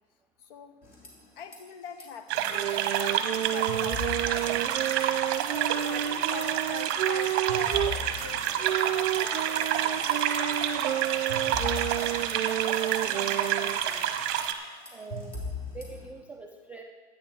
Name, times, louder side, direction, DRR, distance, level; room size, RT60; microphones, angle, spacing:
voice 1, 0.4-0.8 1.4-4.8 5.4-12.1, left 7 dB, 50° left, 7 dB, 1.4 m, -44 dB
sound 1, 0.8-1.6 1.8-2.0 2.4-5.1 5.3-5.9 6.3-9.7 10.1-16.1, left 3 dB, 25° left, 3.2 m, -41 dB
sound 2, 2.3-14.5, right 9 dB, 35° right, 1.1 m, -29 dB
sound 3, 2.5-8.0 8.6-13.8, right 13 dB, 75° right, 0.5 m, -31 dB
voice 2, 13.0-14.1 14.9-15.3 15.7-16.8, right 3 dB, 5° right, 1 dB, 0.3 m, -44 dB
13.0 x 9.3 x 4.6 m, 1.4 s
hypercardioid pair, 120°, 35 cm